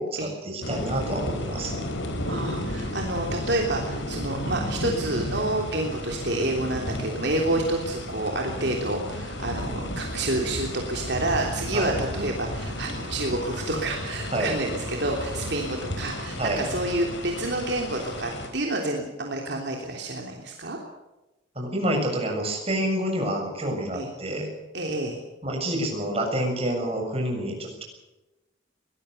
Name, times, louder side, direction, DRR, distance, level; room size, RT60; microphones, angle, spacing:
voice 1, 0.0-1.7 11.7-12.0 14.3-14.5 16.4-16.6 21.6-24.5 25.4-27.8, right 1 dB, 30° right, 1 dB, 7.2 m, -28 dB
sound 1, 0.6-18.5, left 1 dB, 75° left, 4.2 m, -33 dB
voice 2, 2.3-20.8 23.9-24.1 24.7-25.2, right 2 dB, 60° right, 0 dB, 3.3 m, -28 dB
23.5 x 19.5 x 6.8 m, 1.0 s
head